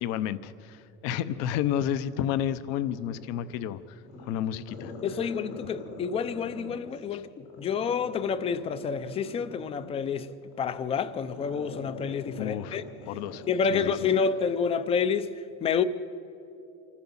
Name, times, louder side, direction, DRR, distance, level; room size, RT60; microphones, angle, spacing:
voice 1, 0.0-3.8 4.2-4.9 7.1-7.2 12.4-12.8 13.1-13.4 13.7-13.9, left 10 dB, 55° left, 0.8 m, -31 dB
Growling, 2.0-3.6 4.0-7.0 7.4-14.3 14.6-14.7, left 2 dB, 90° left, 5.9 m, -43 dB
voice 2, 5.0-10.3 10.6-12.8 13.5-15.8, left 6 dB, 20° left, 0.5 m, -29 dB
26.0 x 15.0 x 7.2 m
cardioid pair, 175°, 30 cm